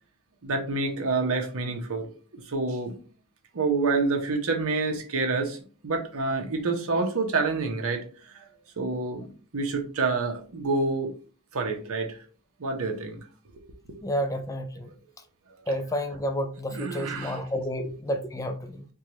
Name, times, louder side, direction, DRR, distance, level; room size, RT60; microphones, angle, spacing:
voice 1, 0.4-2.1 2.3-2.9 3.5-5.6 5.8-8.0 8.3-8.4 8.8-9.3 9.5-11.1 11.5-12.2 12.6-13.2 13.9-14.0 16.7-17.4, right 3 dB, 65° right, 0.8 m, -27 dB
voice 2, 14.0-14.9 15.7-18.8, equal, 15° left, 0.4 m, -30 dB
4.6 x 2.3 x 2.9 m
head